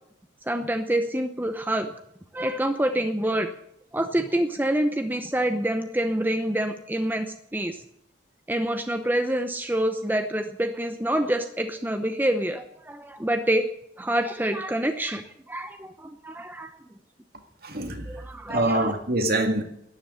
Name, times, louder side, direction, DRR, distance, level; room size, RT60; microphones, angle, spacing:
voice 1, 0.5-1.9 2.3-3.5 3.9-7.3 7.5-7.8 8.5-13.7 14.0-16.7 18.1-18.9, right 1 dB, 10° right, 7 dB, 0.8 m, -26 dB
voice 2, 17.6-18.1 18.5-19.6, right 1 dB, 50° right, 6 dB, 2.1 m, -24 dB
12.5 x 10.0 x 9.9 m, 0.77 s
head